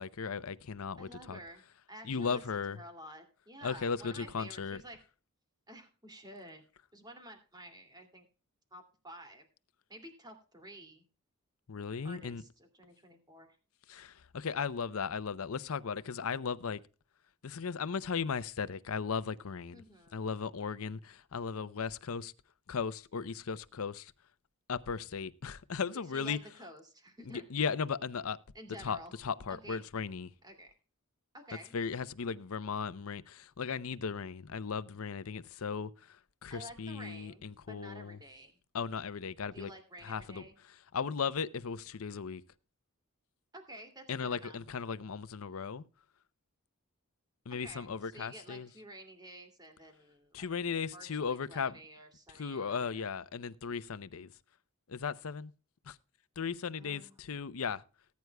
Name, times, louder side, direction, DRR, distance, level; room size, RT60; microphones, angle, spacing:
voice 1, 0.0-1.4 2.0-2.8 3.6-4.8 11.7-12.4 13.9-16.8 17.4-19.8 20.1-22.3 22.7-24.1 24.7-26.4 27.3-28.4 28.8-30.3 31.7-38.2 38.7-39.7 40.0-40.4 40.9-42.4 44.1-45.8 47.5-48.7 50.3-51.8 52.3-54.3 54.9-55.5 55.9-56.0 56.4-57.8, left 6 dB, 70° left, 0.6 m, -36 dB
voice 2, 1.0-1.6 1.9-5.0 5.7-6.6 6.9-8.3 8.7-9.4 9.9-11.0 12.0-13.6 19.7-20.2 25.9-27.4 28.5-29.1 29.5-29.8 30.4-30.7 31.3-31.8 36.5-38.6 39.5-40.5 43.5-44.6 47.6-50.5 50.9-53.1 56.8-57.2, right 1 dB, 20° right, 2.4 m, -51 dB
19.0 x 9.4 x 2.2 m
head